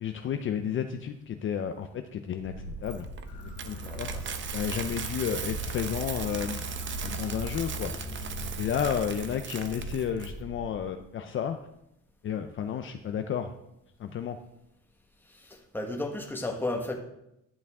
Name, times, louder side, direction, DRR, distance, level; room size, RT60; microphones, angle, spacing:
voice 1, 0.0-2.5 2.8-3.1 3.7-4.2 4.5-6.6 7.0-7.9 8.6-11.6 12.2-13.5 14.0-14.4, left 8 dB, 40° left, 7 dB, 0.5 m, -32 dB
sound 1, 2.4-10.8, right 1 dB, 80° right, 1.7 m, -42 dB
Coin (dropping), 2.9-10.3, right 7 dB, 40° right, 0.7 m, -39 dB
sound 2, 3.3-9.4, equal, 85° left, 2.2 m, -40 dB
voice 2, 3.8-4.4 15.2-16.9, left 2 dB, 5° left, 2 dB, 1.2 m, -34 dB
11.0 x 8.2 x 3.6 m, 0.84 s
cardioid pair, 155°, 30 cm